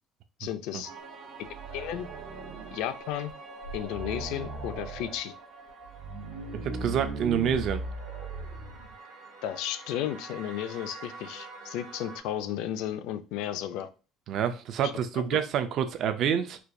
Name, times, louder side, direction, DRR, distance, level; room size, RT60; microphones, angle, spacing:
voice 1, 0.4-0.9 1.4-2.1 2.7-3.3 3.7-5.3 9.4-13.9 14.8-15.2, left 11 dB, 70° left, 11 dB, 0.4 m, -34 dB
sound 1, 0.8-12.2, right 3 dB, 65° right, 0.9 m, -47 dB
sound 2, 1.4-2.9 3.3-3.4 3.6-5.2 5.8-8.9, right 3 dB, 80° right, 1.3 m, -38 dB
voice 2, 6.6-7.9 14.3-16.6, right 8 dB, 45° right, 10 dB, 0.4 m, -27 dB
4.4 x 2.3 x 2.6 m, 0.33 s
cardioid pair, 170°, 0 cm